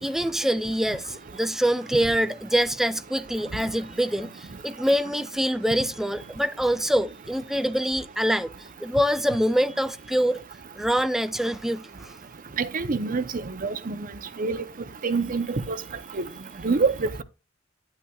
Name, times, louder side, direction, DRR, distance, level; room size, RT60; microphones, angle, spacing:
voice 1, 0.0-8.5 8.8-10.4 10.8-12.1, equal, ahead, 0.4 m, -25 dB
voice 2, 12.6-13.2 13.6-14.1 14.4-14.6 15.0-15.8 16.2-16.3 16.6-17.2, right 4 dB, 45° right, 0.7 m, -25 dB
9.5 x 8.8 x 2.3 m
head